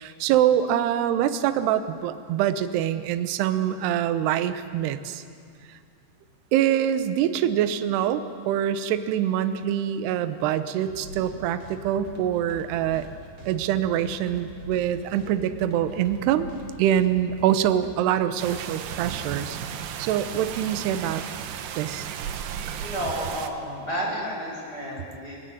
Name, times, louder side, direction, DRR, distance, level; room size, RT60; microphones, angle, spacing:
voice 1, 0.0-5.2 6.5-13.1 13.5-16.5 16.8-21.2 21.8-22.1, right 10 dB, 75° right, 10 dB, 2.7 m, -25 dB
sound 1, 10.8-17.9, right 2 dB, 45° right, 3.6 m, -44 dB
sound 2, 18.4-23.5, right 8 dB, 90° right, 1.9 m, -34 dB
voice 2, 22.8-25.4, equal, 20° left, -4 dB, 7.8 m, -31 dB
29.0 x 17.5 x 9.4 m, 2.3 s
omnidirectional pair, 5.6 m